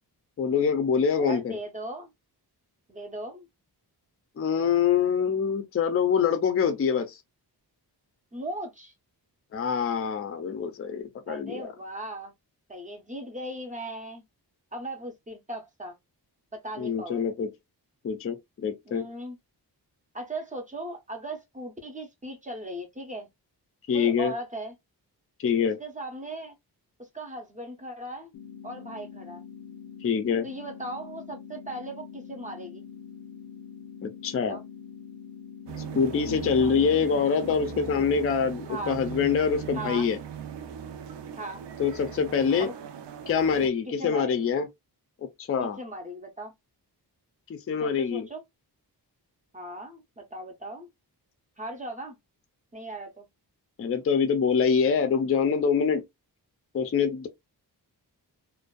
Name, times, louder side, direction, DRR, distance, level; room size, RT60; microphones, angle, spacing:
voice 1, 0.4-1.5 4.4-7.2 9.5-11.7 16.8-17.5 18.0-19.1 23.9-24.3 25.4-25.8 30.0-30.4 34.0-34.6 35.9-40.2 41.8-42.7 43.3-44.7 45.4-45.8 47.5-48.3 53.8-56.0 56.7-57.3, left 6 dB, 35° left, 0.4 m, -25 dB
voice 2, 1.2-2.1 2.9-3.5 8.3-8.9 11.3-12.3 12.7-14.2 14.7-16.0 16.5-17.2 18.9-19.4 20.1-23.3 23.9-24.7 25.8-26.5 27.1-28.3 28.6-29.4 30.4-32.8 34.5-34.6 36.6-36.7 38.7-39.0 39.7-40.1 41.4-41.7 42.6-42.7 43.9-44.4 45.6-46.5 47.8-48.4 49.5-50.9 51.6-52.2 52.7-53.3, right 1 dB, 20° right, 0.6 m, -38 dB
sound 1, 28.3-38.3, left 7 dB, 85° left, 0.6 m, -44 dB
sound 2, 35.7-43.7, right 7 dB, 85° right, 0.6 m, -39 dB
2.5 x 2.2 x 2.2 m
wide cardioid pair, 155°, 41 cm